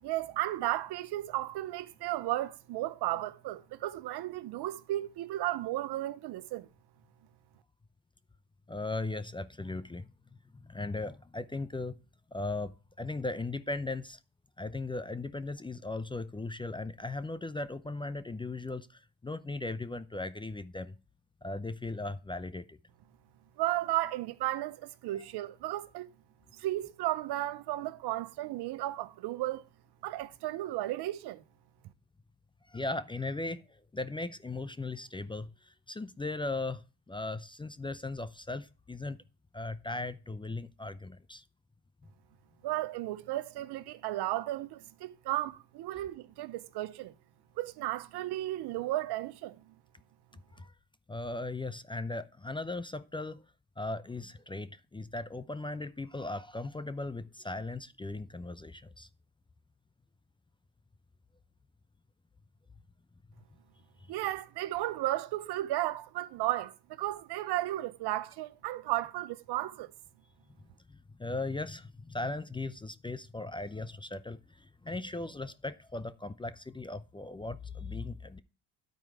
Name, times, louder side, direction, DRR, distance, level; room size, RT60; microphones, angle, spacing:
voice 1, 0.0-6.7 23.6-26.1 26.5-29.6 30.0-31.4 42.6-47.1 47.6-49.7 64.1-69.9, right 15 dB, 70° right, 0.7 m, -34 dB
voice 2, 8.7-10.1 10.5-12.0 12.3-14.2 14.6-21.0 21.4-22.8 32.7-39.2 39.5-41.4 50.5-50.7 51.1-53.4 53.8-59.1 70.9-78.4, left 2 dB, 10° left, 0.4 m, -38 dB
10.5 x 4.6 x 4.7 m
supercardioid pair, 65°, 41 cm